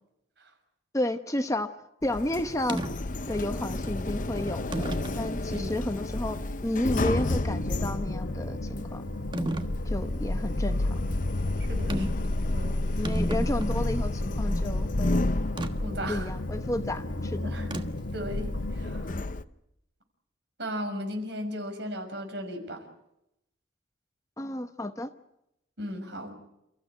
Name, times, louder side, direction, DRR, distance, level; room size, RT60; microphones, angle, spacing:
voice 1, 0.9-1.7 2.0-2.8 3.3-9.0 9.8-11.0 11.9-12.1 13.0-15.3 16.1-17.5 24.4-25.1, left 1 dB, 15° left, 8 dB, 0.9 m, -32 dB
Sliding door, 2.0-19.4, left 2 dB, 45° left, 0.8 m, -31 dB
sound 1, 2.7-2.9 3.8-4.0 4.7-5.2 5.9-6.0 9.3-9.7 11.9-12.3 12.6-12.7 12.9-14.0 15.6-15.7 17.7-18.1, right 1 dB, 25° right, 1.3 m, -32 dB
sound 2, 7.5-19.1, left 1 dB, 80° left, 1.5 m, -37 dB
voice 2, 11.7-12.1 12.5-13.0 15.8-16.3 17.4-17.8 18.1-19.2 20.6-22.8 25.8-26.3, equal, 60° right, 5 dB, 6.1 m, -36 dB
30.0 x 15.0 x 9.1 m, 0.84 s
head